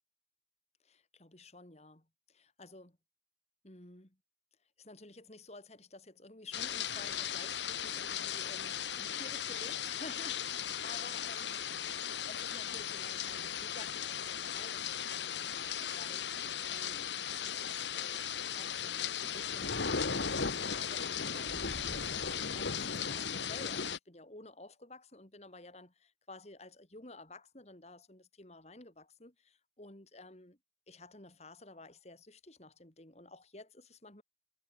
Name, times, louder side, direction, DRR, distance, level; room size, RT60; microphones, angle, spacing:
voice 1, 0.8-3.0 3.6-4.2 4.8-11.6 12.3-17.1 17.4-25.9 26.3-30.6 30.9-34.2, left 2 dB, 35° left, 2.8 m, -53 dB
sound 1, 6.5-24.0, left 7 dB, 85° left, 1.9 m, -37 dB
sound 2, 21.3-23.0, equal, 5° right, 5.8 m, -51 dB
head